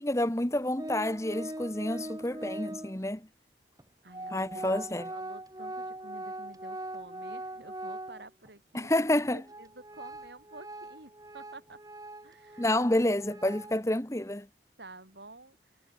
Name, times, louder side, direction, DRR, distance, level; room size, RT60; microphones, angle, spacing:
voice 1, 0.0-3.3 4.3-5.1 8.7-9.4 12.6-14.5, left 1 dB, 15° left, 1.2 m, -29 dB
Organ, 0.8-3.0 3.8-3.9 4.1-8.5 8.9-9.0 9.4-13.8, right 1 dB, 20° right, 2.5 m, -41 dB
voice 2, 4.0-4.6 5.1-8.9 9.3-11.8 12.2-12.7 14.8-15.6, right 2 dB, 70° right, 7.5 m, -50 dB
head